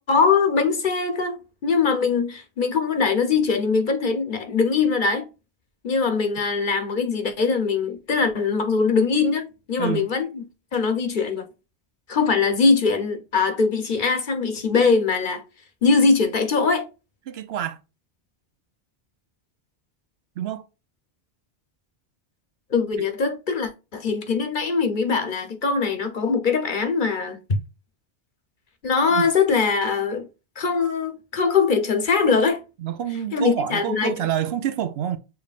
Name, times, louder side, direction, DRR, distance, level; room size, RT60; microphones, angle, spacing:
voice 1, 0.1-5.3 5.8-10.4 10.7-11.5 12.1-15.4 15.8-16.9 22.7-27.4 28.8-30.3 30.6-32.6 33.3-34.1, left 5 dB, 50° left, 1.0 m, -22 dB
voice 2, 9.8-10.1 17.3-17.8 20.4-20.6 29.1-29.3 32.8-35.2, right 10 dB, 75° right, 0.9 m, -27 dB
7.0 x 3.2 x 2.4 m
omnidirectional pair, 1.1 m